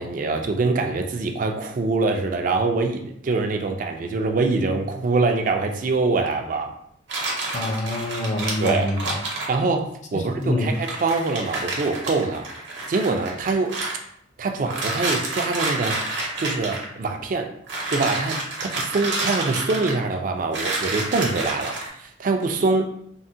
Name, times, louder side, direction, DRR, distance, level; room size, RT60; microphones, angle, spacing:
voice 1, 0.0-6.8 8.6-8.8 9.5-12.5 12.9-13.8 14.4-16.0 16.4-17.5 17.9-22.9, right 3 dB, 45° right, 4 dB, 0.3 m, -24 dB
sound 1, 7.1-9.5 10.4-10.5 10.7-13.9 14.7-16.9 17.7-20.1 20.5-21.9, right 2 dB, 70° right, 0.7 m, -29 dB
voice 2, 7.5-9.2 10.1-10.8, left 1 dB, 40° left, 1 dB, 0.5 m, -25 dB
3.6 x 2.1 x 2.6 m, 0.71 s
head